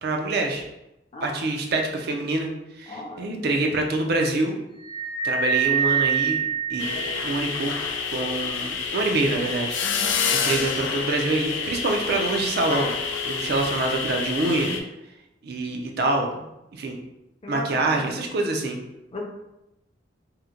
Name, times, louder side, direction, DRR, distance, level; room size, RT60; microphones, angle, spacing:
voice 1, 0.0-0.6 1.2-2.5 2.7-4.6 5.2-6.4 6.7-7.8 8.1-9.8 10.4-12.9 13.2-14.8 15.4-16.4 16.7-17.0 17.5-18.8, right 2 dB, 55° right, 2 dB, 0.5 m, -25 dB
voice 2, 2.9-3.4 9.8-10.2 17.4-17.7 17.9-18.2 19.1-19.2, left 2 dB, 30° left, -1 dB, 0.5 m, -36 dB
sound 1, 4.8-7.5, right 7 dB, 60° left, 0.9 m, -25 dB
sound 2, 6.8-14.8, left 5 dB, 85° left, 0.4 m, -28 dB
2.9 x 2.1 x 3.7 m, 0.90 s
head